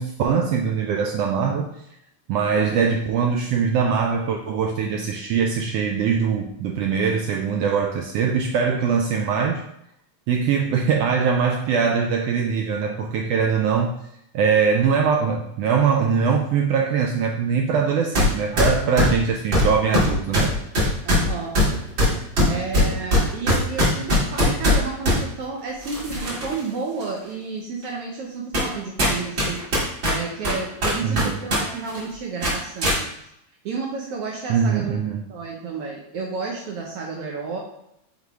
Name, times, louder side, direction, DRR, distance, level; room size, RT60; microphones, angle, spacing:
voice 1, 0.0-1.7 2.3-9.6 10.3-14.0 14.3-20.5 31.0-31.4 34.5-35.2, right 6 dB, 90° right, 2 dB, 1.3 m, -22 dB
sound 1, 18.1-18.3 18.6-25.2 25.8-26.6 27.0-27.1 27.8-27.9 28.5-28.7 29.0-31.6 31.9-32.0 32.4-33.0, left 1 dB, 40° right, 2.7 m, -20 dB
voice 2, 21.0-21.6 22.4-29.6 30.1-33.1 33.6-34.9 35.3-37.6, right 4 dB, 70° right, -1 dB, 1.4 m, -31 dB
5.6 x 3.8 x 4.6 m, 0.78 s
omnidirectional pair, 3.3 m